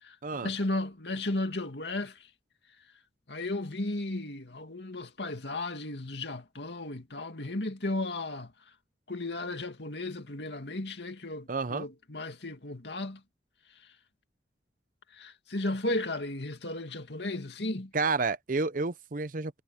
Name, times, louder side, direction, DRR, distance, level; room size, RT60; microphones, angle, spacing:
voice 1, 0.4-2.3 3.3-8.5 9.1-13.2 15.1-17.9, left 2 dB, 75° left, 2.4 m, -34 dB
voice 2, 11.5-11.9 17.9-19.6, right 4 dB, 50° right, 0.7 m, -30 dB
head